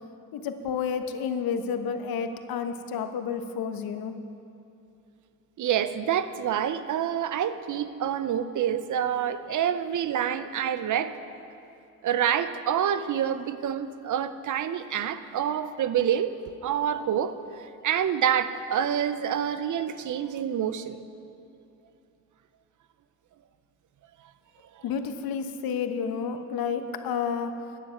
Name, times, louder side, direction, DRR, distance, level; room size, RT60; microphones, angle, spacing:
voice 1, 0.3-4.1 24.8-27.5, left 6 dB, 75° left, 8 dB, 1.1 m, -30 dB
voice 2, 5.6-11.2 12.0-21.0, right 9 dB, 55° right, 12 dB, 0.7 m, -27 dB
15.0 x 10.0 x 5.8 m, 2.6 s
cardioid pair, 90°, 36 cm